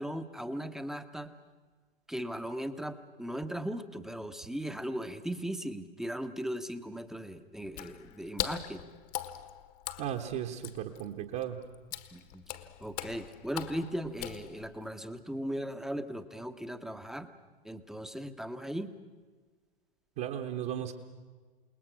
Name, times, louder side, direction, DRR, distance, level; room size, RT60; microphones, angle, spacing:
voice 1, 0.0-1.3 2.1-8.8 12.1-12.4 12.8-17.3 17.6-18.9, equal, ahead, 9 dB, 1.0 m, -38 dB
Water / Splash splatter, 7.7-14.9, left 13 dB, 40° left, 1.4 m, -41 dB
voice 2, 10.0-11.6 20.2-20.9, right 10 dB, 40° right, 1 dB, 1.4 m, -35 dB
28.5 x 20.0 x 6.3 m, 1.5 s
figure-of-eight pair, 100°, 29 cm